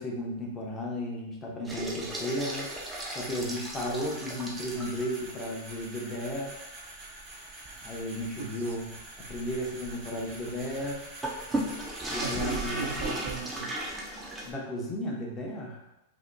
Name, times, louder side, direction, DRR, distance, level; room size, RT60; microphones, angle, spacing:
voice 1, 0.0-2.7 3.1-6.6 7.8-8.9 9.2-11.0 12.1-13.0 14.4-15.8, left 1 dB, 20° left, -2 dB, 0.8 m, -34 dB
sound 1, 1.6-5.2 5.7-5.8 6.2-6.3 6.8-14.5, right 1 dB, 10° right, 0.6 m, -36 dB
sound 2, 2.0-13.5, right 2 dB, 25° right, 1.2 m, -46 dB
voice 2, 8.4-8.8 12.2-14.0, right 6 dB, 85° right, 5 dB, 0.4 m, -38 dB
4.9 x 2.9 x 2.2 m, 0.91 s
supercardioid pair, 140°, 0 cm